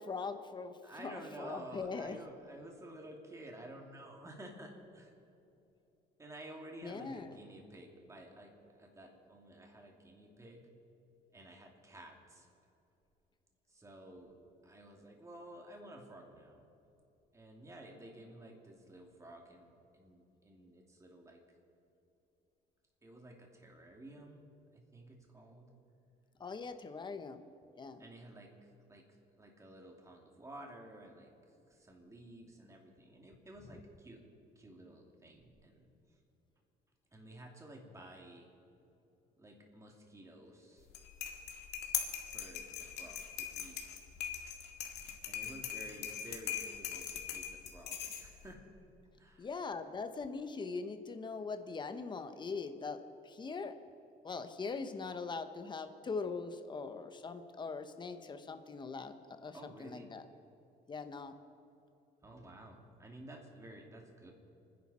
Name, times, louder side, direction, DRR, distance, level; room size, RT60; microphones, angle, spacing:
voice 1, 0.0-2.2 6.8-7.4 26.4-27.4 27.8-28.0 49.4-53.7 54.2-60.2 60.9-61.3, left 4 dB, 25° left, 8 dB, 1.1 m, -41 dB
voice 2, 0.8-5.2 6.2-10.6 11.3-12.5 13.7-14.4 14.6-16.6 17.3-21.4 23.0-24.4 24.7-25.7 28.0-28.5 28.9-29.0 29.4-31.3 31.7-34.2 34.6-35.9 37.1-38.5 39.4-40.9 42.3-44.0 45.3-48.6 49.2-49.5 59.5-60.1 62.2-64.3, right 1 dB, 20° right, 1 dB, 2.8 m, -52 dB
sound 1, 40.8-48.5, left 9 dB, 80° left, 2.1 m, -41 dB
29.5 x 10.5 x 4.3 m, 2.8 s
cardioid pair, 110°, 17 cm